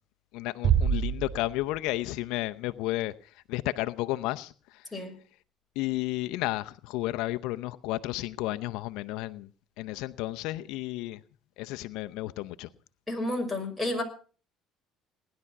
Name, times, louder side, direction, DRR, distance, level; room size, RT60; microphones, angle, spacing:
voice 1, 0.3-5.0 5.8-9.5 9.8-11.2 11.6-12.7, left 17 dB, 80° left, 0.7 m, -32 dB
Bass drum, 0.6-2.1, right 8 dB, 50° right, 2.6 m, -26 dB
voice 2, 13.1-14.0, left 1 dB, 5° left, 6.2 m, -30 dB
19.5 x 11.0 x 5.9 m
cardioid pair, 105°, 0 cm